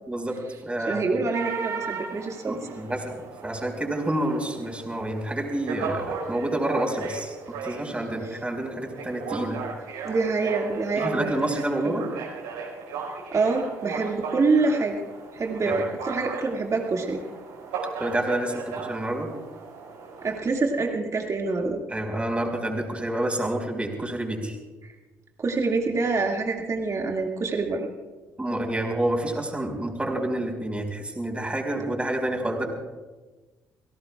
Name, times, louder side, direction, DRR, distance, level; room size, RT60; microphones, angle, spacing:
voice 1, 0.1-1.0 2.5-7.3 7.6-9.6 11.0-12.1 15.6-15.8 18.0-19.3 21.9-24.6 28.4-32.7, right 1 dB, 15° right, 2 dB, 5.0 m, -28 dB
voice 2, 0.9-2.6 10.0-11.3 11.8-11.9 13.1-15.0 15.3-17.2 20.2-21.8 24.8-24.9 25.4-27.9, right 3 dB, 40° right, 1 dB, 2.2 m, -26 dB
sound 1, 1.3-20.4, right 5 dB, 80° right, 5.1 m, -36 dB
29.5 x 17.0 x 2.4 m, 1.2 s
hypercardioid pair, 50°, 8 cm